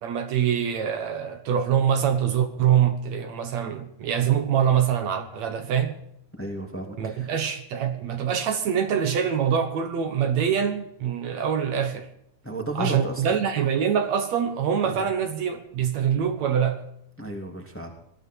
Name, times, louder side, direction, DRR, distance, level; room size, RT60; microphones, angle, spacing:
voice 1, 0.0-6.0 7.0-12.1 12.8-16.8, right 8 dB, 65° right, 2.4 m, -24 dB
voice 2, 6.4-7.3 12.4-13.2 14.8-15.0 17.2-17.9, right 1 dB, 5° left, 2.3 m, -33 dB
20.0 x 13.0 x 4.6 m
omnidirectional pair, 3.5 m